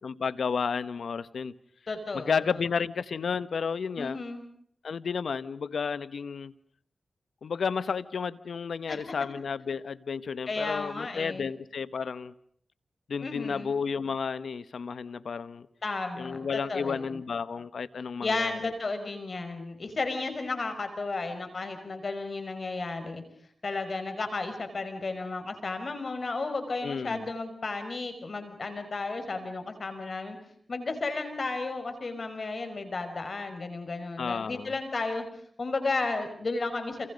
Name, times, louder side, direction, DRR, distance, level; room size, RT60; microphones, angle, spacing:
voice 1, 0.0-1.6 2.1-4.2 4.8-6.5 7.4-12.3 13.1-15.7 16.2-18.7 26.8-27.3 34.2-34.7, left 6 dB, 80° left, 1.1 m, -32 dB
voice 2, 1.9-2.4 4.0-4.4 8.9-9.0 10.5-11.5 13.2-13.7 15.8-17.1 18.2-23.2 23.6-30.4 30.7-35.3 35.6-37.1, left 3 dB, 60° left, 5.6 m, -33 dB
28.5 x 28.0 x 5.3 m
cardioid pair, 40°, 0 cm